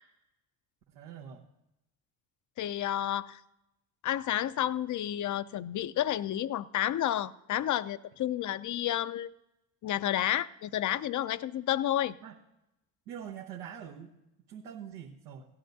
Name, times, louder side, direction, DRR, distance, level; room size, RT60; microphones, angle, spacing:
voice 1, 0.9-1.4 12.2-12.4 13.1-14.1 14.5-15.5, right 8 dB, 85° right, -3 dB, 1.1 m, -44 dB
voice 2, 2.6-3.4 4.0-9.3 9.8-12.1, left 12 dB, 40° left, 16 dB, 0.5 m, -30 dB
17.0 x 11.0 x 2.6 m, 0.89 s
hypercardioid pair, 55°, 46 cm